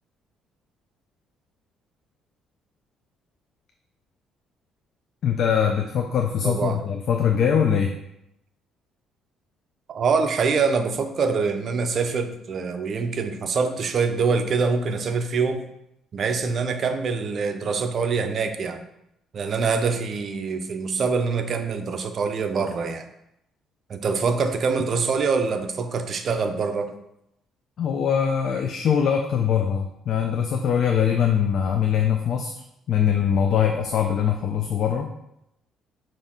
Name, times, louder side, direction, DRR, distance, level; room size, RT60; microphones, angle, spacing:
voice 1, 5.2-7.9 27.8-32.5 32.9-35.1, left 8 dB, 55° left, 4 dB, 0.4 m, -22 dB
voice 2, 6.4-6.8 9.9-15.6 16.1-18.8 19.3-23.1 23.9-26.9, right 5 dB, 45° right, 7 dB, 0.5 m, -24 dB
5.5 x 2.6 x 3.6 m, 0.82 s
cardioid pair, 115°, 0 cm